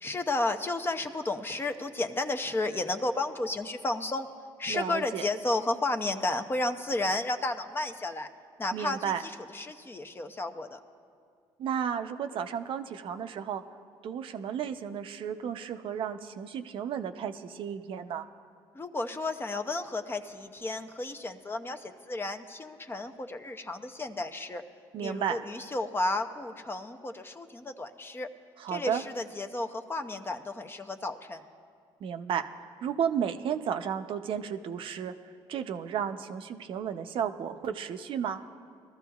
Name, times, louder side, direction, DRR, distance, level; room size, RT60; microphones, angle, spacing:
voice 1, 0.0-4.3 4.6-8.3 8.6-10.8 18.7-24.6 25.0-28.3 28.7-31.4, left 2 dB, 20° left, 6 dB, 0.7 m, -32 dB
voice 2, 4.7-5.3 8.7-9.2 11.6-13.6 14.0-18.2 24.9-25.4 28.6-29.0 32.0-32.5 32.8-35.1 35.5-38.4, right 8 dB, 60° right, 8 dB, 0.5 m, -33 dB
20.5 x 13.5 x 2.3 m, 2.2 s
supercardioid pair, 85°, 10 cm